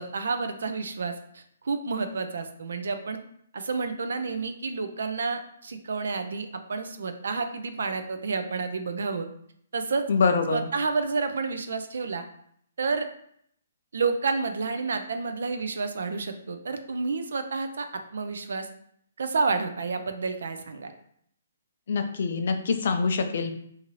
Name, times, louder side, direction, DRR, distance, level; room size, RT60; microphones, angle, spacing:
voice 1, 0.0-3.2 3.5-9.3 9.7-10.0 10.5-12.2 12.8-13.1 13.9-17.9 18.1-18.7 19.2-20.9, right 4 dB, 75° right, 8 dB, 0.4 m, -30 dB
voice 2, 10.1-10.6 21.9-23.5, left 5 dB, 60° left, 7 dB, 0.4 m, -25 dB
2.6 x 2.5 x 3.0 m, 0.68 s
hypercardioid pair, 150°, 0 cm